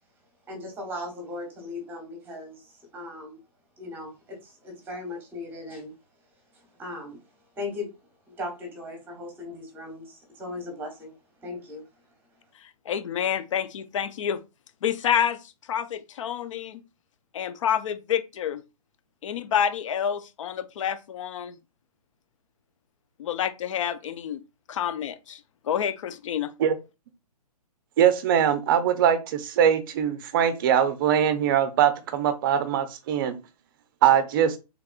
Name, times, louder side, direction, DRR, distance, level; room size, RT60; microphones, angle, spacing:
voice 1, 0.5-3.4 3.8-5.9 6.5-7.2 7.6-7.9 8.3-11.2 11.4-11.9, left 2 dB, 10° right, 1.2 m, -38 dB
voice 2, 12.9-14.4 14.8-15.4 15.7-16.8 17.3-18.6 19.2-21.6 23.2-24.4 24.7-26.5, left 9 dB, 55° left, 0.5 m, -28 dB
voice 3, 28.0-33.4 34.0-34.6, right 9 dB, 35° right, 0.5 m, -22 dB
3.4 x 3.4 x 2.4 m
hypercardioid pair, 150°, 20 cm